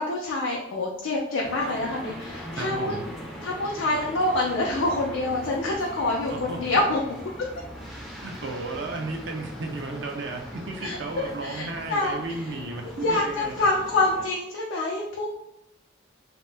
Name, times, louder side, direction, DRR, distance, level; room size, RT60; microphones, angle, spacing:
voice 1, 0.0-2.9 3.4-7.0 10.8-11.0 11.4-12.2 12.8-15.3, left 2 dB, 85° left, -2 dB, 0.5 m, -26 dB
sound 1, 1.4-14.3, equal, ahead, 0.4 m, -40 dB
voice 2, 2.5-3.0 6.3-6.8 8.2-13.7, right 2 dB, 65° right, 2 dB, 0.5 m, -34 dB
2.8 x 2.0 x 3.3 m, 0.80 s
head